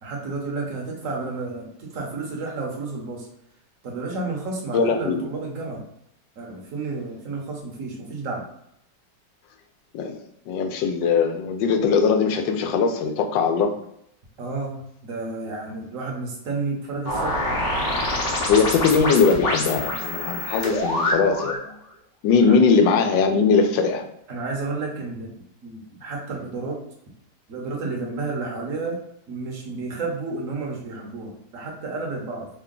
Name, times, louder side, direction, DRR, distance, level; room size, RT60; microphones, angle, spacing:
voice 1, 0.0-3.3 3.8-5.8 6.4-8.4 14.4-14.7 15.0-17.4 22.4-22.6 24.3-25.3 25.6-26.8 27.5-29.0 29.3-32.5, right 3 dB, 55° right, -1 dB, 1.2 m, -31 dB
voice 2, 4.7-5.2 9.9-10.2 10.5-13.7 18.5-21.7 22.2-24.0, left 5 dB, 90° left, 5 dB, 1.3 m, -20 dB
sound 1, 17.0-21.6, left 1 dB, 50° left, 1.1 m, -26 dB
3.5 x 2.2 x 3.7 m, 0.76 s
omnidirectional pair, 1.9 m